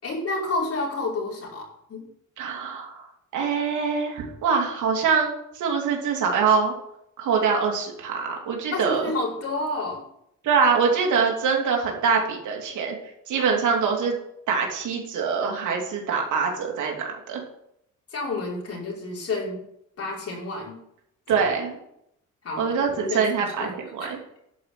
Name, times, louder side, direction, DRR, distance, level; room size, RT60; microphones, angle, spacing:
voice 1, 0.0-2.1 8.7-10.0 13.3-13.6 18.1-19.6 20.0-20.8 21.3-21.5 22.4-23.2 23.6-23.7 24.0-24.1, left 2 dB, 50° left, -4 dB, 5.9 m, -30 dB
voice 2, 2.4-3.1 3.3-6.7 7.2-9.1 10.4-13.0 13.3-14.2 14.5-17.4 21.3-21.8 22.6-24.2, right 5 dB, 80° right, 1 dB, 3.1 m, -24 dB
11.5 x 5.7 x 8.4 m, 0.76 s
cardioid pair, 90°, 30 cm